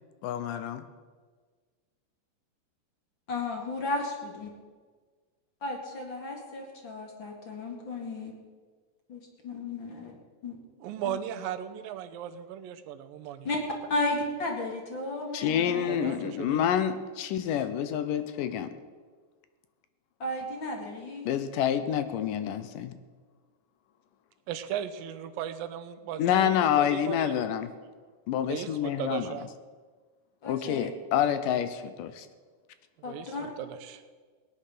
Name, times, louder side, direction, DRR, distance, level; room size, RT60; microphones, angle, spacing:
voice 1, 0.2-0.8 15.3-18.7 21.3-23.0 26.2-27.7 28.3-29.4 30.5-32.3, left 9 dB, 75° left, 11 dB, 2.4 m, -28 dB
voice 2, 3.3-4.5 5.6-8.3 9.1-10.1 10.4-10.6 11.1-11.2 13.4-13.6 13.9-15.9 20.2-21.3 30.4-30.9 33.0-33.5, left 2 dB, 40° left, 1 dB, 2.4 m, -34 dB
voice 3, 10.8-13.5 15.9-16.7 24.5-26.5 26.8-27.5 28.5-29.5 33.1-34.0, right 10 dB, 90° right, 9 dB, 2.6 m, -37 dB
17.0 x 10.0 x 6.7 m, 1.5 s
omnidirectional pair, 4.0 m